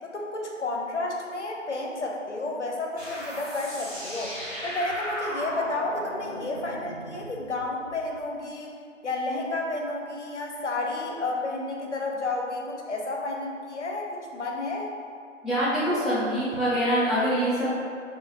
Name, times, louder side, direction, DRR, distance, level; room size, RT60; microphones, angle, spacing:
voice 1, 0.0-4.3 4.6-8.7 9.0-14.9, left 2 dB, 60° left, 0 dB, 0.5 m, -31 dB
sound 1, 3.0-8.2, equal, 25° left, 1.2 m, -36 dB
voice 2, 15.4-17.7, equal, ahead, -11 dB, 0.4 m, -24 dB
2.6 x 2.2 x 2.9 m, 2.2 s
figure-of-eight pair, 175°, 39 cm